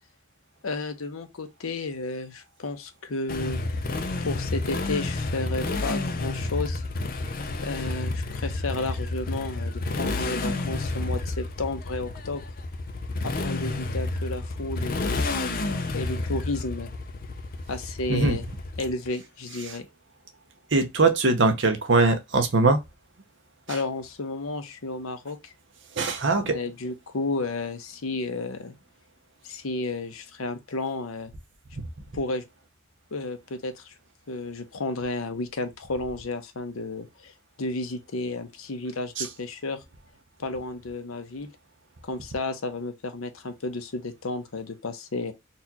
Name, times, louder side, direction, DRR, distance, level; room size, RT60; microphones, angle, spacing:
voice 1, 0.6-3.6 4.2-6.8 7.6-12.4 13.2-15.2 15.9-16.9 17.7-18.4 18.8-19.9 23.7-25.5 26.5-28.7 29.4-31.3 32.1-32.4 33.1-33.9 34.3-39.8 40.4-41.5 42.0-45.3, left 3 dB, 85° left, 0.7 m, -32 dB
Motorcycle, 3.3-19.1, left 2 dB, 45° left, 0.5 m, -30 dB
voice 2, 20.7-22.8 23.7-23.8 26.0-26.6 39.2-39.3, right 3 dB, 60° right, 0.7 m, -21 dB
4.1 x 2.4 x 2.7 m
head